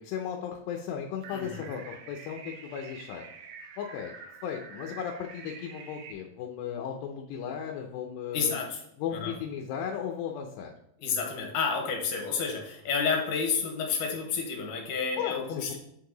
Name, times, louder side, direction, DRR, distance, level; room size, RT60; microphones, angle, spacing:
voice 1, 0.0-3.3 3.8-4.2 4.4-8.6 9.0-10.7 15.2-15.8, left 8 dB, 85° left, 2 dB, 2.4 m, -36 dB
sound 1, 1.2-6.1, right 6 dB, 75° right, 1.6 m, -47 dB
voice 2, 1.3-1.6 8.3-8.8 9.1-9.3 11.0-15.8, left 5 dB, 70° left, 2 dB, 2.7 m, -30 dB
7.9 x 4.7 x 3.9 m, 0.77 s
omnidirectional pair, 4.0 m